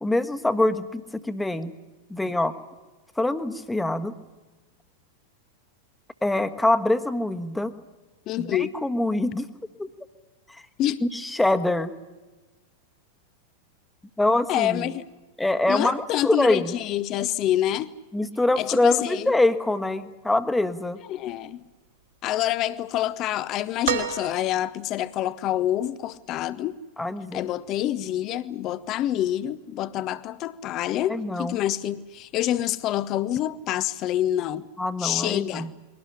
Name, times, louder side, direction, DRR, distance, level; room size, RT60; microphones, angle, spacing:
voice 1, 0.0-1.7 2.1-2.5 3.2-4.1 6.2-7.7 8.4-9.5 9.8-9.9 10.5-10.6 11.0-11.9 14.2-14.9 15.4-16.7 18.1-21.0 27.0-27.4 31.1-31.6 34.8-35.7, left 2 dB, 5° left, 1.3 m, -24 dB
voice 2, 8.3-8.7 10.8-11.0 14.5-15.0 15.7-17.9 18.6-19.3 21.1-21.6 22.2-26.8 27.3-34.7 35.0-35.7, left 12 dB, 35° left, 0.8 m, -27 dB
sound 1, 23.8-24.9 26.4-26.5, right 9 dB, 65° right, 2.8 m, -29 dB
22.5 x 18.0 x 10.0 m
figure-of-eight pair, 90°, 0 cm